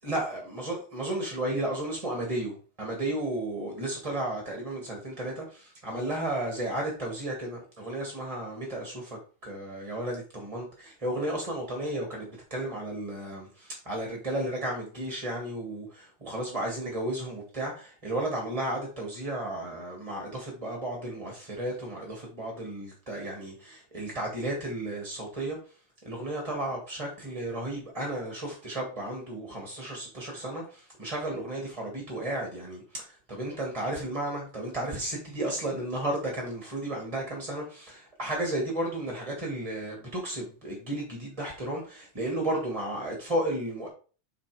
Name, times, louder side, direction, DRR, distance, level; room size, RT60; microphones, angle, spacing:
voice 1, 0.0-25.6 26.0-43.9, right 1 dB, 15° right, 1.2 m, -33 dB
7.5 x 4.2 x 4.8 m
omnidirectional pair, 3.4 m